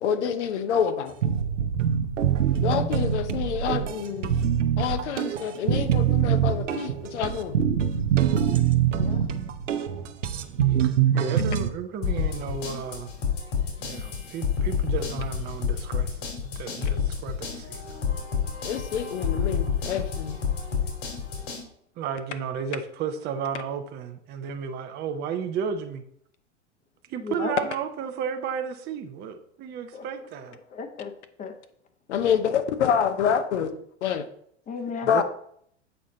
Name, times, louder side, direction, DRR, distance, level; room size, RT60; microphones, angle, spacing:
voice 1, 0.0-1.1 2.6-4.4 4.8-7.5 16.8-16.9 18.6-20.4 32.1-33.7 34.0-34.3 35.1-35.2, left 8 dB, 70° left, 9 dB, 0.8 m, -27 dB
sound 1, 1.2-11.7, right 9 dB, 90° right, 0.7 m, -24 dB
voice 2, 10.8-13.1 13.8-18.2 22.0-26.0 27.1-30.6 35.0-35.2, right 7 dB, 30° right, 6 dB, 0.6 m, -33 dB
sound 2, 12.0-21.6, left 6 dB, 55° left, 2.5 m, -29 dB
voice 3, 27.2-27.5 29.9-30.1 30.7-31.5 34.7-35.1, left 5 dB, 20° left, 9 dB, 0.8 m, -35 dB
7.9 x 4.1 x 3.8 m, 0.68 s
hypercardioid pair, 105°, 36 cm